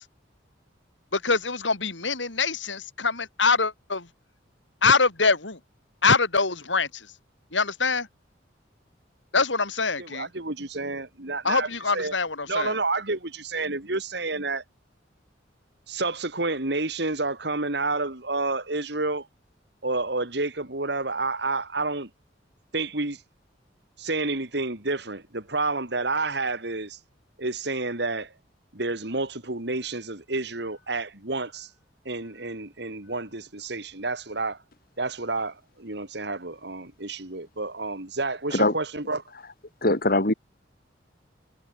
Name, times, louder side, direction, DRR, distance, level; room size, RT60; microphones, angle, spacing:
voice 1, 1.1-4.1 4.8-5.6 6.0-7.1 7.5-8.1 9.3-10.3 11.4-12.7, left 4 dB, 85° left, 4.9 m, -24 dB
voice 2, 10.0-12.1 12.5-14.6 15.9-19.3 19.8-22.1 22.7-23.2 24.0-27.0 27.4-28.3 28.7-31.7 32.0-34.6 35.0-39.2, right 3 dB, 60° right, 2.8 m, -29 dB
voice 3, 39.8-40.3, left 2 dB, 55° left, 3.9 m, -21 dB
head